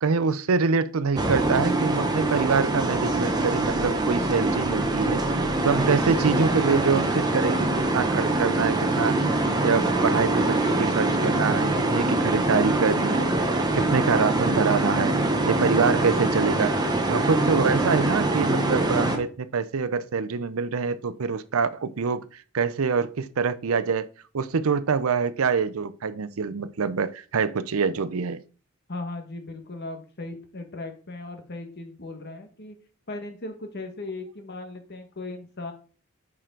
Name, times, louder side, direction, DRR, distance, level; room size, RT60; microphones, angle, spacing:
voice 1, 0.0-5.2 5.6-9.3 9.6-13.3 13.7-15.1 15.4-16.8 17.1-22.2 22.5-24.1 24.3-28.4, right 5 dB, 80° right, 0.6 m, -25 dB
sound 1, 1.2-19.2, right 2 dB, 20° right, 1.0 m, -24 dB
voice 2, 28.9-32.8 33.1-35.7, left 2 dB, 50° left, 1.5 m, -37 dB
8.8 x 4.9 x 3.8 m
head